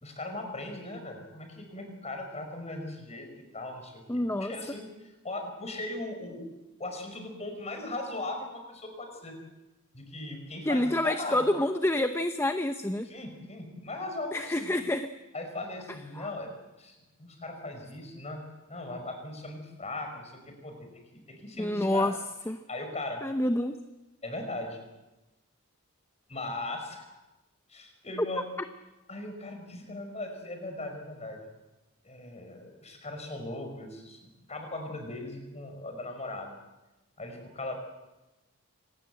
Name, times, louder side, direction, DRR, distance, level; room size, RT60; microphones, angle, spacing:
voice 1, 0.0-4.9 5.2-6.4 6.8-9.4 9.9-11.4 13.1-14.7 15.3-16.5 16.8-18.4 18.7-22.1 22.7-23.2 24.2-24.8 26.3-27.1 27.7-28.4 29.1-31.4 32.0-36.6 37.2-37.7, left 2 dB, 30° left, 5 dB, 5.4 m, -39 dB
voice 2, 4.1-4.5 10.6-13.1 14.3-15.1 16.1-16.3 21.6-22.2 22.5-22.6 23.2-23.8 28.2-28.3, left 1 dB, 10° left, 8 dB, 0.8 m, -28 dB
25.0 x 19.5 x 7.9 m, 1.1 s
head